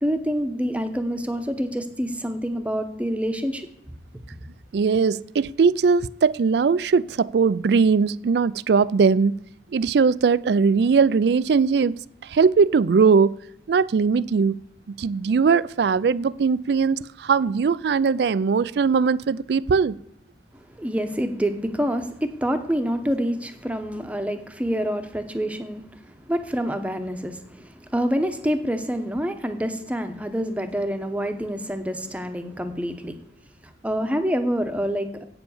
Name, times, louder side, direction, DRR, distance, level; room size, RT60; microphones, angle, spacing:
voice 1, 0.0-3.7 20.5-33.2 33.8-35.2, equal, 5° right, 0.8 m, -27 dB
voice 2, 4.7-9.3 9.7-12.0 12.2-13.3 13.7-14.5 15.0-20.0, right 5 dB, 65° right, 0.4 m, -20 dB
8.8 x 7.0 x 7.1 m
head